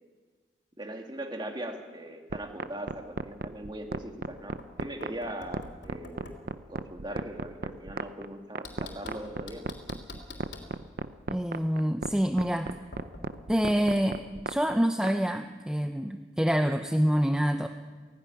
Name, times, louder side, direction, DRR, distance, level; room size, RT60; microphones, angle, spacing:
voice 1, 0.8-6.4 6.7-9.6, right 1 dB, 25° right, 3 dB, 2.2 m, -40 dB
sound 1, 2.3-15.1, right 3 dB, 55° right, 0.7 m, -34 dB
Knock, 4.4-6.5 8.6-10.8 12.9-13.4, left 2 dB, 80° left, 3.2 m, -46 dB
voice 2, 11.3-12.7 13.5-14.2 14.5-17.7, equal, 5° right, 6 dB, 0.6 m, -26 dB
16.5 x 16.5 x 9.8 m, 1.5 s
head